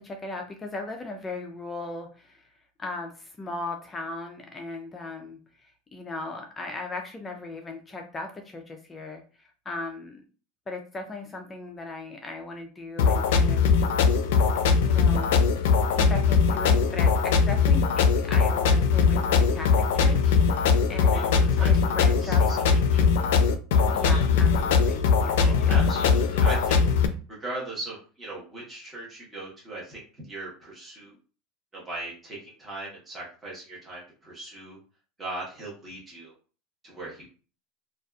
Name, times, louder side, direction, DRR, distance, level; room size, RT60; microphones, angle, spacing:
voice 1, 0.0-2.4 2.8-10.2 10.7-13.6 14.8-15.3 16.0-21.3 21.6-22.4 23.9-25.8, left 2 dB, 15° left, 3 dB, 0.4 m, -37 dB
sound 1, 13.0-27.1, left 5 dB, 85° left, 0.4 m, -21 dB
voice 2, 21.1-21.8 22.2-22.6 22.9-23.1 25.3-26.8 27.3-31.2 31.7-34.8 35.2-36.3 36.8-37.3, right 2 dB, 15° right, -6 dB, 1.1 m, -38 dB
2.6 x 2.3 x 2.3 m, 0.36 s
supercardioid pair, 160°, 0 cm